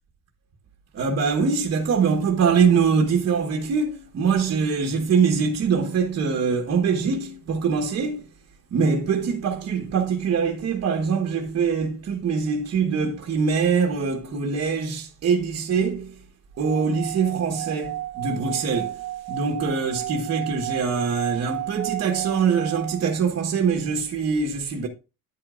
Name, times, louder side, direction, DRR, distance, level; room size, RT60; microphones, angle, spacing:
voice 1, 0.9-8.3 8.7-16.2 16.6-24.9, right 5 dB, 40° right, 1.2 m, -23 dB
Singing / Glass, 16.6-23.2, right 15 dB, 70° right, 0.9 m, -33 dB
10.0 x 8.2 x 2.4 m
cardioid pair, 180°, 37 cm